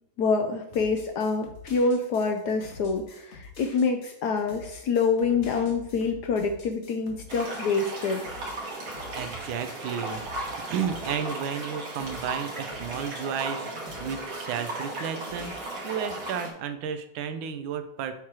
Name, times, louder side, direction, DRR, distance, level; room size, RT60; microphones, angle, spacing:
voice 1, 0.2-8.2, left 4 dB, 70° left, 5 dB, 1.0 m, -26 dB
sound 1, 0.7-13.6 13.9-15.7, left 3 dB, 45° left, 1.1 m, -47 dB
sound 2, 7.3-16.5, right 2 dB, 65° right, 1.9 m, -36 dB
voice 2, 9.1-18.2, right 7 dB, 90° right, 9 dB, 1.4 m, -33 dB
7.4 x 2.9 x 4.7 m, 0.79 s
omnidirectional pair, 2.2 m